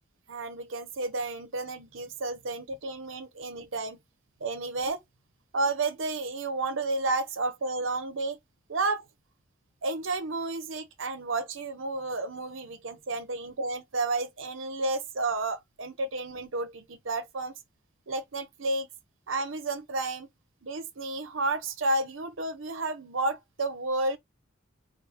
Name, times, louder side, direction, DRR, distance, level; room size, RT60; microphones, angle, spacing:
voice 1, 0.3-4.0 4.4-5.0 5.5-8.4 8.7-9.0 9.8-17.5 18.1-18.9 19.3-20.3 20.6-24.2, right 2 dB, 75° right, 0.8 m, -31 dB
3.5 x 2.6 x 4.4 m
head